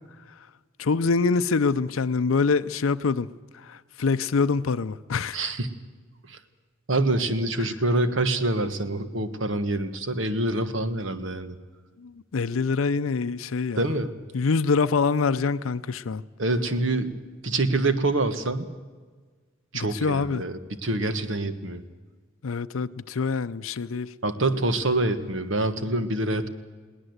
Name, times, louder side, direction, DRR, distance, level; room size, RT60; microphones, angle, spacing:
voice 1, 0.8-3.3 3.7-5.5 7.6-7.7 12.3-13.8 14.3-16.2 19.7-20.4 22.4-24.1, left 4 dB, 90° left, 0.5 m, -25 dB
voice 2, 5.3-5.7 6.9-11.5 13.8-14.1 16.4-17.1 17.4-18.7 19.7-21.8 24.2-26.5, right 2 dB, 65° right, 1.5 m, -26 dB
21.0 x 18.0 x 8.0 m
head